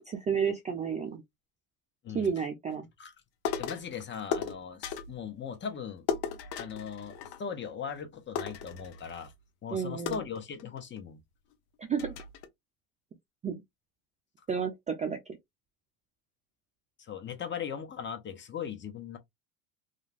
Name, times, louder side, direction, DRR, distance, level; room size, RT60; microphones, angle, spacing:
voice 1, 0.1-1.2 2.1-2.9 9.7-10.2 11.8-12.1 13.4-13.6 14.5-15.4, right 6 dB, 15° right, 0.4 m, -31 dB
sound 1, 3.4-3.9 4.3-5.2 6.1-7.7 8.0-8.1 8.3-9.3 10.1-11.0 11.5-11.6 12.0-12.5, left 7 dB, 55° left, 0.8 m, -36 dB
voice 2, 3.6-9.3 9.6-11.2 17.0-19.2, left 7 dB, 25° left, 0.6 m, -39 dB
2.4 x 2.2 x 3.2 m
hypercardioid pair, 95°, 46 cm